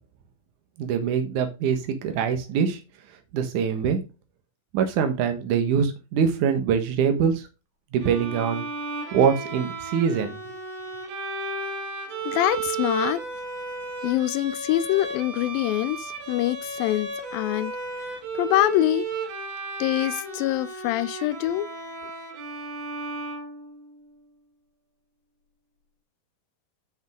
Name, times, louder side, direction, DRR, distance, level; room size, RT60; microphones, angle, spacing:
voice 1, 0.8-2.8 3.3-4.0 4.7-7.5 7.9-8.6 9.1-10.4, right 7 dB, 65° right, 2.6 m, -23 dB
Bowed string instrument, 8.0-24.1, right 3 dB, 85° right, 3.9 m, -34 dB
voice 2, 12.3-13.2 14.0-17.7 18.1-19.1 19.8-21.7, left 15 dB, 85° left, 2.3 m, -25 dB
8.0 x 6.4 x 3.6 m
omnidirectional pair, 4.1 m